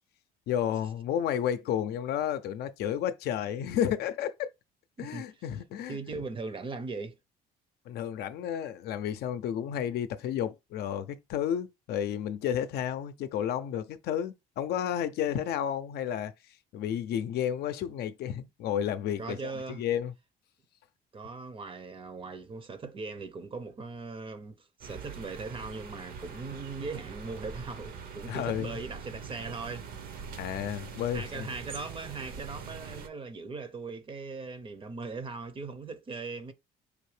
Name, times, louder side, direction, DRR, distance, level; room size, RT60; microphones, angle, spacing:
voice 1, 0.5-4.5 5.0-6.0 7.9-16.3 16.7-19.4 19.7-20.1 28.3-28.7 30.4-31.5, left 9 dB, 70° left, 0.5 m, -31 dB
voice 2, 5.0-5.4 5.9-7.1 19.2-19.8 21.1-30.3 30.8-36.5, right 4 dB, 30° right, 0.6 m, -39 dB
sound 1, 24.8-33.1, right 6 dB, 60° right, 0.8 m, -43 dB
4.9 x 2.7 x 3.2 m
cardioid pair, 110°, 17 cm